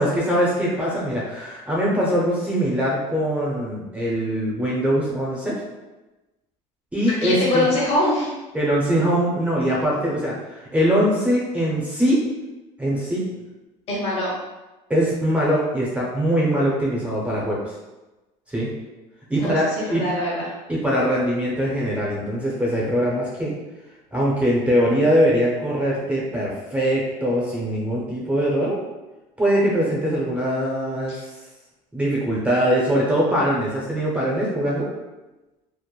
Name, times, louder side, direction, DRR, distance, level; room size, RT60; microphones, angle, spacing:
voice 1, 0.0-5.6 6.9-7.7 8.5-12.2 12.8-13.2 14.9-17.6 18.5-18.7 19.3-20.0 20.7-23.5 24.1-28.8 29.4-31.1 31.9-34.9, equal, 10° right, -5 dB, 0.5 m, -22 dB
voice 2, 7.1-8.3 13.9-14.3 19.4-20.5 31.1-31.2, left 1 dB, 45° left, -5 dB, 1.0 m, -23 dB
3.0 x 2.0 x 2.3 m, 1.1 s
supercardioid pair, 115°, 15 cm